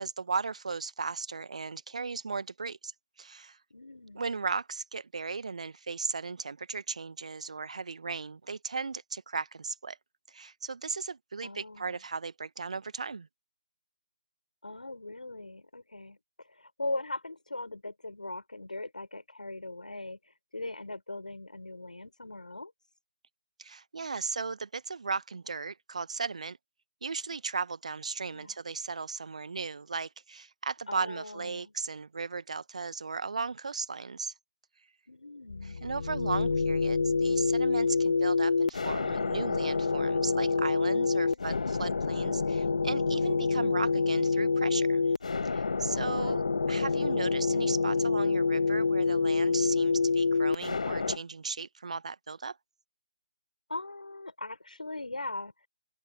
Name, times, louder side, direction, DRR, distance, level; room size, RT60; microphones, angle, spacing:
voice 1, 0.0-2.9 3.2-3.6 4.1-10.0 10.3-13.3 23.6-26.6 27.0-34.3 35.8-45.0 45.4-46.4 46.7-52.6, right 4 dB, 55° right, 1.3 m, -36 dB
voice 2, 3.7-4.3 11.4-12.0 14.6-22.7 28.3-28.6 30.9-31.7 35.1-35.8 41.0-41.4 45.9-46.6 53.7-55.7, left 2 dB, 75° left, 5.9 m, -40 dB
sound 1, 35.5-51.2, left 4 dB, 60° left, 1.6 m, -27 dB
open air
figure-of-eight pair, 145°, 4 cm